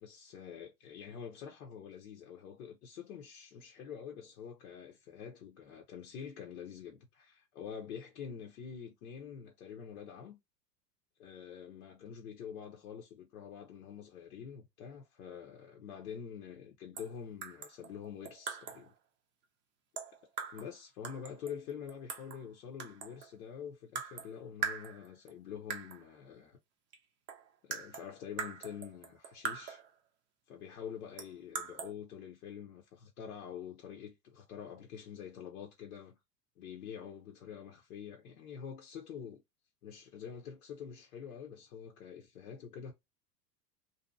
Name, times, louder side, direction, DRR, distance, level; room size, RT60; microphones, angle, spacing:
voice 1, 0.0-10.4 11.2-18.9 20.5-26.6 27.6-29.8 30.5-36.2 36.6-39.4 39.8-42.9, left 7 dB, 65° left, 0.8 m, -46 dB
sound 1, 17.0-17.1 17.4-18.9 20.0-20.7 21.0-22.4 22.8-23.3 23.9-24.3 24.6-25.3 25.7-26.0 26.9-27.0 27.3-29.9 31.2-31.9, right 6 dB, 25° right, 0.5 m, -41 dB
2.7 x 2.4 x 2.3 m
figure-of-eight pair, 90°, 48 cm